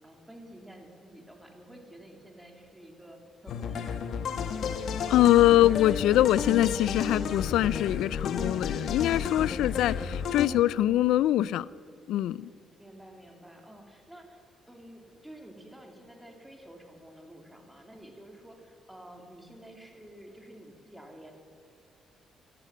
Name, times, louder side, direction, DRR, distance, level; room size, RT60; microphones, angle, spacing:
voice 1, 0.0-4.2 12.8-21.3, right 1 dB, 5° right, 2 dB, 2.8 m, -50 dB
sound 1, 3.5-10.5, left 6 dB, 70° left, 1.0 m, -32 dB
voice 2, 5.1-11.7 12.1-12.5, left 13 dB, 85° left, 21 dB, 0.3 m, -23 dB
13.5 x 11.5 x 8.1 m, 2.4 s
cardioid pair, 90°, 0 cm